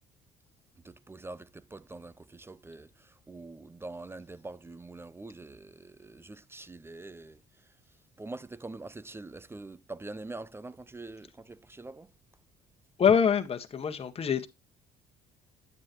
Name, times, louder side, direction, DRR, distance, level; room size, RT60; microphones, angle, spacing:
voice 1, 0.8-7.7 8.2-12.1, right 2 dB, 15° right, 0.5 m, -44 dB
voice 2, 13.0-14.5, left 7 dB, 35° left, 1.5 m, -25 dB
9.6 x 9.5 x 3.1 m
cardioid pair, 110°, 17 cm